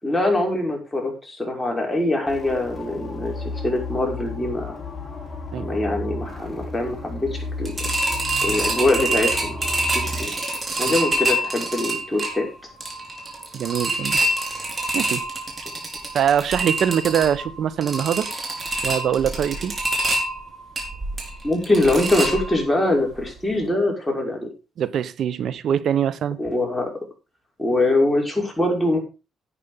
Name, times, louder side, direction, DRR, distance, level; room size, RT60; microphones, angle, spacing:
voice 1, 0.0-4.8 5.6-7.7 8.4-10.4 10.8-12.5 21.4-24.5 26.4-27.0 27.6-29.0, left 1 dB, 10° left, 5.8 m, -23 dB
sound 1, 2.3-10.3, left 3 dB, 25° left, 4.5 m, -33 dB
sound 2, 7.7-22.8 23.2-23.3 23.6-23.7, right 1 dB, 30° right, 4.6 m, -26 dB
voice 2, 13.5-14.2 14.9-15.2 16.1-18.3 18.8-19.8 24.8-26.4, right 9 dB, 65° right, 1.0 m, -23 dB
11.0 x 8.6 x 5.2 m
cardioid pair, 90°, 0 cm